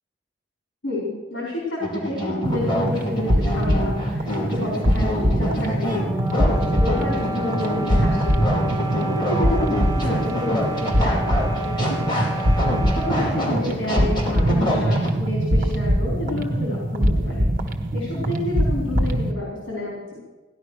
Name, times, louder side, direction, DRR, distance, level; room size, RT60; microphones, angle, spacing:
voice 1, 0.8-6.0 6.4-6.5 6.8-8.5 9.0-11.2 11.5-12.4 12.9-20.2, left 1 dB, 75° left, -3 dB, 4.5 m, -30 dB
sound 1, 1.8-15.1, equal, 25° left, 4.5 m, -27 dB
sound 2, 2.4-19.3, equal, 50° right, 1.4 m, -23 dB
sound 3, 6.0-13.5, right 1 dB, 20° right, 1.2 m, -32 dB
17.5 x 11.5 x 6.5 m, 1.2 s
head